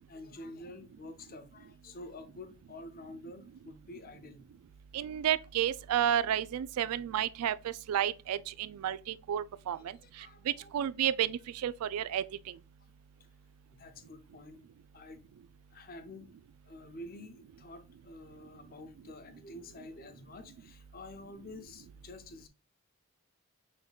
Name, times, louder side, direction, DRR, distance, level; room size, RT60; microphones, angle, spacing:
voice 1, 0.0-4.4 6.9-7.0 9.8-10.7 13.7-14.6 14.9-15.3 15.7-16.3 16.7-22.5, left 2 dB, 40° left, 0.6 m, -49 dB
voice 2, 4.9-9.8 10.5-12.2, right 10 dB, 85° right, 0.3 m, -31 dB
6.1 x 3.6 x 2.3 m
head